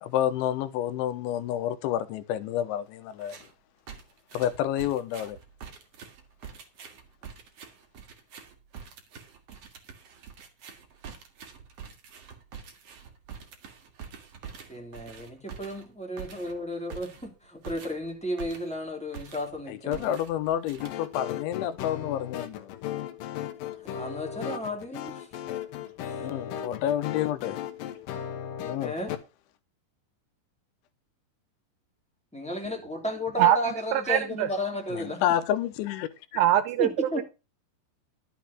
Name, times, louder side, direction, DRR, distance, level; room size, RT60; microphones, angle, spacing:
voice 1, 0.0-3.4 4.3-5.4 19.7-22.8 26.2-27.6 28.6-28.9 34.9-36.4, left 11 dB, 90° left, 3.3 m, -29 dB
sound 1, 3.2-3.5 3.9-18.8 19.1-19.6 19.9-21.3, right 6 dB, 50° right, 2.0 m, -46 dB
voice 2, 14.7-20.1 23.9-25.3 28.8-29.1 32.3-35.2 36.8-37.2, left 1 dB, ahead, 2.0 m, -33 dB
sound 2, 20.8-29.2, left 9 dB, 70° left, 2.2 m, -36 dB
voice 3, 33.4-34.5 36.4-37.2, right 12 dB, 80° right, 2.6 m, -23 dB
11.5 x 7.1 x 5.8 m
omnidirectional pair, 5.3 m